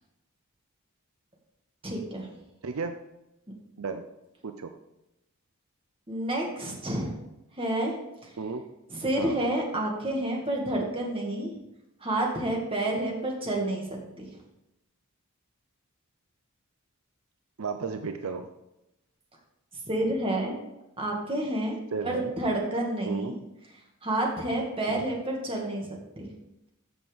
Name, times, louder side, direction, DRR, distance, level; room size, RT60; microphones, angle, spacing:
voice 1, 1.8-2.3 6.1-7.2 7.6-8.0 8.2-8.3 8.9-11.5 12.0-13.8 14.2-14.3 19.9-20.5 21.0-21.8 22.0-23.3 24.0-25.9 26.2-26.3, right 1 dB, 25° right, -1 dB, 2.0 m, -29 dB
voice 2, 2.6-2.9 3.8-4.0 4.4-4.7 8.4-8.6 9.2-9.4 17.6-18.5 21.9-22.3 23.1-23.3 24.9-25.0, right 5 dB, 70° right, 7 dB, 0.6 m, -33 dB
13.5 x 6.2 x 3.5 m, 0.91 s
head